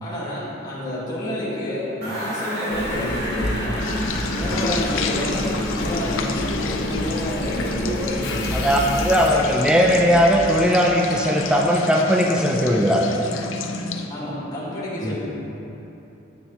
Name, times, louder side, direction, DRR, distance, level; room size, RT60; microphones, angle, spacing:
voice 1, 0.0-3.9 4.3-8.9 14.1-15.2, left 1 dB, 20° left, -9 dB, 1.9 m, -29 dB
sound 1, 2.0-6.4, right 1 dB, 55° right, 1.7 m, -34 dB
Engine, 2.7-10.6 11.2-11.3, left 1 dB, 60° left, 0.9 m, -29 dB
sound 2, 3.8-14.1, left 3 dB, 85° left, 0.6 m, -30 dB
voice 2, 4.4-4.7 8.5-13.1 15.0-15.2, equal, 5° right, -1 dB, 0.5 m, -19 dB
9.7 x 8.4 x 3.1 m, 3.0 s
head